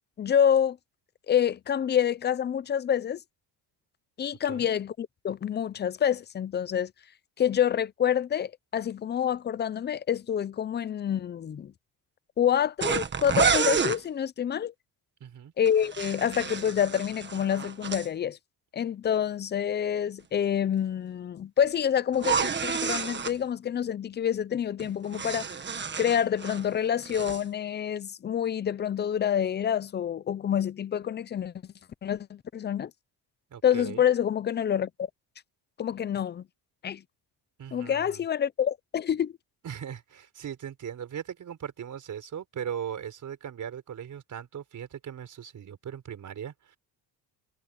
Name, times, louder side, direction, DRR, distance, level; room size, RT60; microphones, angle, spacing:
voice 1, 0.2-0.8 1.3-3.2 4.2-6.9 7.4-11.7 12.4-14.7 15.6-18.4 18.7-25.5 26.0-31.5 32.0-32.9 33.6-35.1 35.8-36.4 36.8-37.0 37.7-39.3, left 9 dB, 25° left, 0.5 m, -27 dB
sound 1, 12.8-14.0 15.7-18.1 22.1-23.4 24.8-26.7 27.0-27.4, right 6 dB, 25° right, 1.5 m, -29 dB
voice 2, 15.2-15.5 33.5-34.0 37.6-38.2 39.6-46.8, right 9 dB, 45° right, 4.8 m, -39 dB
cardioid pair, 140°, 41 cm